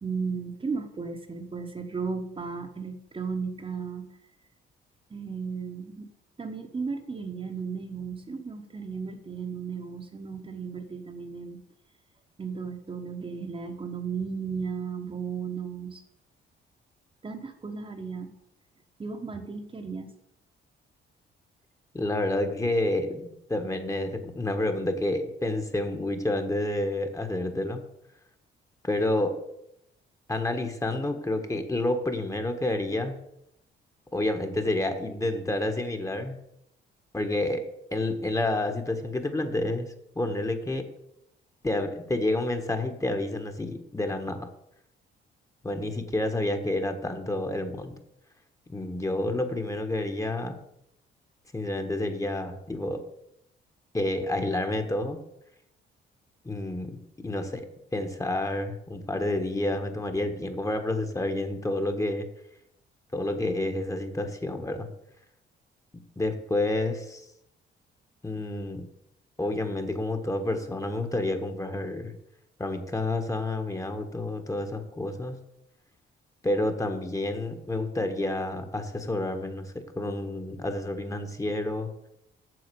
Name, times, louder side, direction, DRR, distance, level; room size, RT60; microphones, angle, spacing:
voice 1, 0.0-4.1 5.1-6.1 6.4-11.6 12.4-16.0 17.2-18.3 19.0-20.1, right 5 dB, 25° right, 4 dB, 1.2 m, -35 dB
voice 2, 21.9-27.8 28.8-29.4 30.3-33.1 34.1-36.4 37.1-40.9 41.6-44.5 45.6-47.9 48.7-50.6 51.5-53.0 53.9-55.2 56.4-57.7 57.9-62.3 63.1-64.9 66.2-67.2 68.2-68.9 69.4-72.1 72.6-75.4 76.4-81.9, left 1 dB, 15° left, 6 dB, 1.4 m, -29 dB
7.9 x 6.7 x 6.9 m, 0.80 s
cardioid pair, 90°, 20 cm